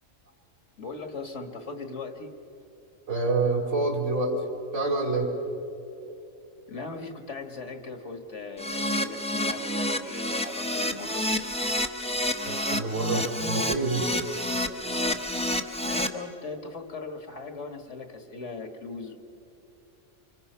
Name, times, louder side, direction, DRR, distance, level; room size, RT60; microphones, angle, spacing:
voice 1, 0.8-2.3 6.7-11.3 15.8-19.2, left 3 dB, 65° left, 6 dB, 2.0 m, -39 dB
voice 2, 3.1-4.3 4.7-5.3 12.4-14.0, right 3 dB, 65° right, 2 dB, 3.5 m, -27 dB
Keyboard (musical), 8.6-16.1, left 1 dB, 5° left, 0.8 m, -29 dB
27.0 x 25.5 x 5.6 m, 2.8 s
omnidirectional pair, 1.3 m